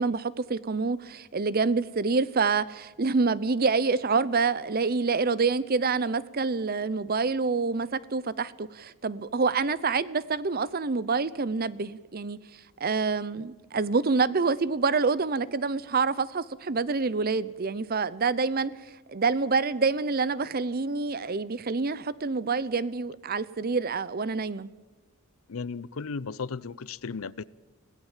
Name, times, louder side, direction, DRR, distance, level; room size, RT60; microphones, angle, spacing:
voice 1, 0.0-12.4 12.8-18.7 19.1-24.7, right 4 dB, 45° right, 0.7 m, -27 dB
voice 2, 25.5-27.4, left 4 dB, 75° left, 0.6 m, -35 dB
25.5 x 17.0 x 7.4 m
head